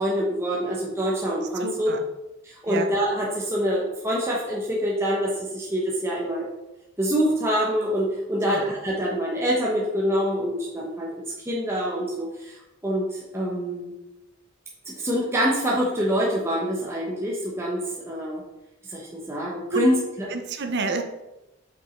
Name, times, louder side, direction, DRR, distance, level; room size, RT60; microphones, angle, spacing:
voice 1, 0.0-1.9 2.4-6.5 7.0-13.9 14.9-18.4 18.9-20.3, equal, 15° right, -4 dB, 1.0 m, -26 dB
voice 2, 1.6-2.0 2.7-2.9 8.5-8.7 19.7-19.9 20.3-21.0, right 4 dB, 55° right, 6 dB, 0.8 m, -28 dB
5.4 x 5.4 x 4.4 m, 0.97 s
head